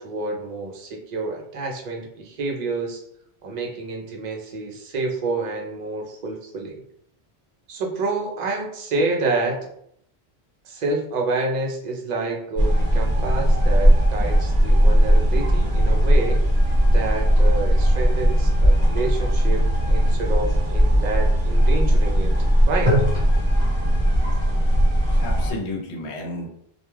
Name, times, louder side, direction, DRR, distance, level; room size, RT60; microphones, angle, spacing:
voice 1, 0.0-3.0 3.4-6.8 7.7-9.6 10.6-16.4 16.9-22.3 22.7-22.9, right 3 dB, 50° right, 1 dB, 0.6 m, -28 dB
sound 1, 12.6-25.5, equal, 35° right, 1.2 m, -18 dB
voice 2, 24.8-26.5, left 2 dB, 85° left, 1 dB, 0.9 m, -32 dB
2.3 x 2.2 x 3.1 m, 0.70 s
omnidirectional pair, 1.1 m